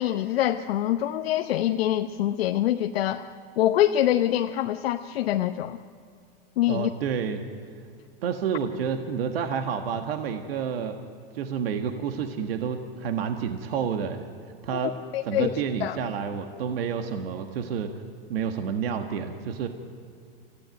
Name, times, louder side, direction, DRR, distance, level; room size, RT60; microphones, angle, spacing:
voice 1, 0.0-3.3 3.6-5.8 6.6-6.9 14.7-14.8 15.1-16.0, left 12 dB, 85° left, 6 dB, 0.9 m, -25 dB
voice 2, 6.7-7.4 8.2-11.0 11.3-14.3 14.6-15.0 15.2-17.9 18.3-19.7, right 7 dB, 80° right, 5 dB, 1.7 m, -29 dB
27.5 x 15.5 x 9.3 m, 2.3 s
supercardioid pair, 130°, 29 cm